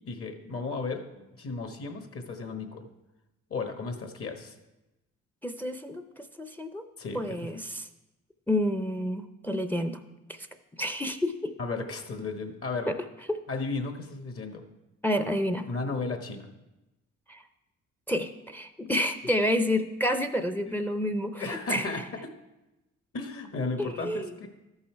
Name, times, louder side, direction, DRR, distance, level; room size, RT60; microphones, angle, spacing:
voice 1, 0.1-2.9 3.5-4.6 7.0-7.4 11.6-12.9 13.5-14.6 15.7-16.5 21.4-22.3 23.1-24.5, left 3 dB, 50° left, 5 dB, 1.3 m, -34 dB
voice 2, 5.4-6.8 7.1-7.9 8.5-10.0 10.3-10.5 10.8-11.5 12.9-13.0 13.3-13.4 15.0-15.7 17.3-17.4 18.1-22.0 23.8-24.3, left 1 dB, 5° left, 8 dB, 0.5 m, -29 dB
13.0 x 5.5 x 4.5 m, 1.0 s
cardioid pair, 90°, 30 cm